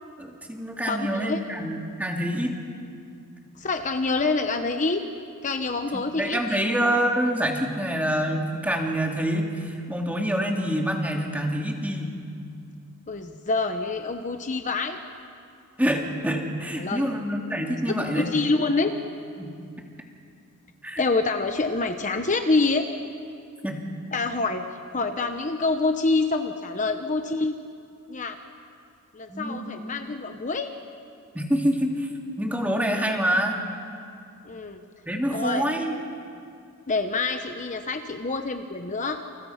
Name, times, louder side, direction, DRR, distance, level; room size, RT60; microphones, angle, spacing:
voice 1, 0.2-2.5 5.9-12.2 15.8-18.3 19.4-19.6 20.8-21.0 23.6-23.9 29.3-29.7 31.3-32.1 32.4-33.6 35.1-35.9, equal, 5° right, 1 dB, 2.7 m, -26 dB
voice 2, 0.9-1.4 3.6-5.0 5.4-6.6 13.1-15.0 16.8-17.1 17.9-18.9 21.0-22.9 24.1-24.6 24.9-27.6 28.1-28.4 29.1-30.7 34.5-34.8 35.3-35.6 36.9-39.2, left 3 dB, 35° left, 6 dB, 1.0 m, -26 dB
29.0 x 29.0 x 5.9 m, 2.4 s
head